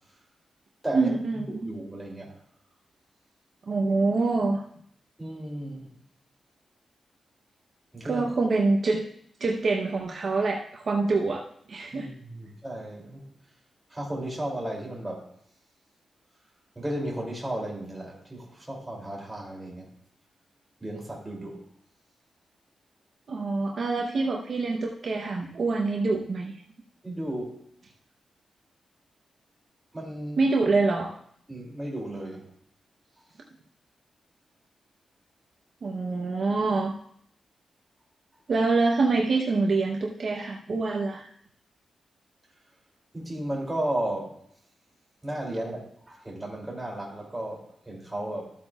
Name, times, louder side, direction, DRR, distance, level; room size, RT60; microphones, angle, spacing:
voice 1, 0.9-1.7 3.7-4.6 8.0-9.0 9.4-11.4 11.7-12.1 23.3-26.5 30.4-31.1 35.8-36.9 38.5-41.3, right 3 dB, 45° right, 0 dB, 0.8 m, -25 dB
voice 2, 1.5-2.4 5.2-5.9 7.9-8.2 11.9-13.3 13.9-15.3 16.8-19.9 20.8-21.6 27.0-27.5 29.9-30.4 31.5-32.5 43.1-44.4 45.2-48.5, right 1 dB, 10° right, -2 dB, 2.8 m, -34 dB
13.5 x 8.4 x 2.4 m, 0.67 s
wide cardioid pair, 160°, 0 cm